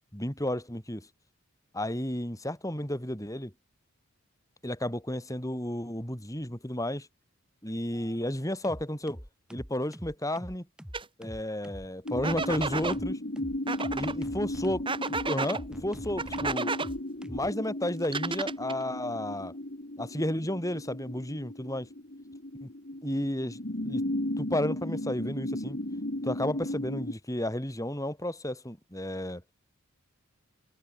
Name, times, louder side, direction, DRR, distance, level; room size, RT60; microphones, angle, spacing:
voice 1, 0.1-1.1 1.7-3.5 4.6-7.1 7.6-9.2 9.5-10.7 11.2-13.2 13.9-14.9 15.3-16.7 17.3-19.5 20.0-21.9 22.6-22.7 23.0-24.0 24.4-25.8 26.2-29.4, left 1 dB, 15° left, 5.7 m, -32 dB
sound 1, 7.9-8.2 8.6-17.5, equal, 5° right, 2.8 m, -44 dB
sound 2, 10.9-11.1 12.2-13.0 13.7-14.1 14.9-15.6 16.2-16.9 18.0-18.8, right 4 dB, 25° right, 4.9 m, -32 dB
sound 3, 12.0-27.1, left 1 dB, 45° left, 2.2 m, -36 dB
head